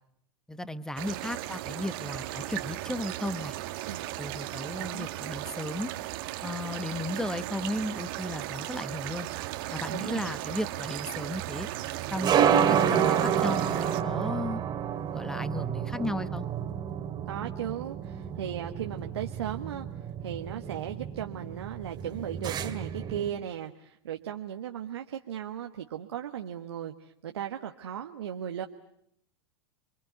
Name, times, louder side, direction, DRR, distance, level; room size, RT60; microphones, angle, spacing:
voice 1, 0.5-3.5 4.2-5.9 6.4-9.3 9.7-11.7 12.1-14.6 15.1-16.4, left 1 dB, 5° left, 13 dB, 1.4 m, -35 dB
sound 1, 1.0-14.0, right 16 dB, 55° right, 1.7 m, -36 dB
voice 2, 4.7-5.1 9.9-10.4 17.3-19.9 20.2-28.7, right 10 dB, 75° right, 4 dB, 1.5 m, -36 dB
sound 2, 9.3-23.3, right 8 dB, 30° right, 2.4 m, -30 dB
29.0 x 23.5 x 8.2 m, 0.74 s
hypercardioid pair, 100°, 14 cm